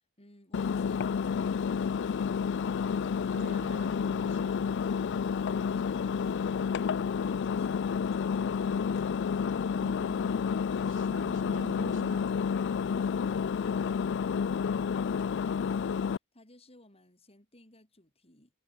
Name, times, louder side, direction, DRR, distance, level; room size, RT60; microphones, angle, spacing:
voice 1, 0.0-2.7 12.9-14.5 16.3-18.5, left 1 dB, 30° left, 6.6 m, -58 dB
Engine, 0.5-16.2, left 6 dB, 55° left, 0.4 m, -30 dB
voice 2, 3.3-4.6 9.7-10.5 10.8-12.3, right 2 dB, 60° right, 1.6 m, -47 dB
head